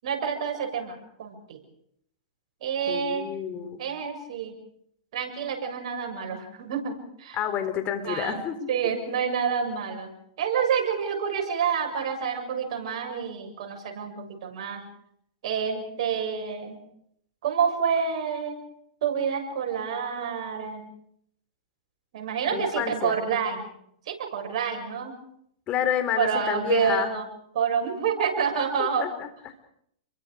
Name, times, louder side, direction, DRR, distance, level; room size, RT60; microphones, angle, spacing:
voice 1, 0.0-1.6 2.6-3.3 3.8-4.6 5.1-7.4 8.0-8.4 8.7-10.1 10.4-14.8 15.4-16.8 17.4-18.6 19.0-20.9 22.1-23.7 24.1-25.1 26.2-27.2 27.5-29.1, right 7 dB, 65° right, 2 dB, 7.2 m, -28 dB
voice 2, 2.9-3.8 7.3-8.7 22.5-23.2 25.7-27.1 28.8-29.5, left 9 dB, 35° left, 9 dB, 3.8 m, -29 dB
29.5 x 23.0 x 5.1 m, 0.71 s
hypercardioid pair, 125°, 4 cm